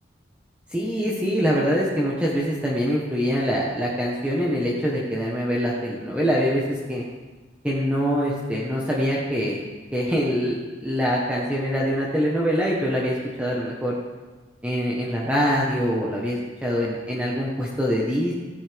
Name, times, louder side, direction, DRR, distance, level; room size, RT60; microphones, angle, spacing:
voice 1, 0.7-7.0 7.6-9.6 9.9-14.0 14.6-18.3, equal, 5° right, -4 dB, 1.2 m, -24 dB
15.5 x 9.6 x 3.5 m, 1.3 s
head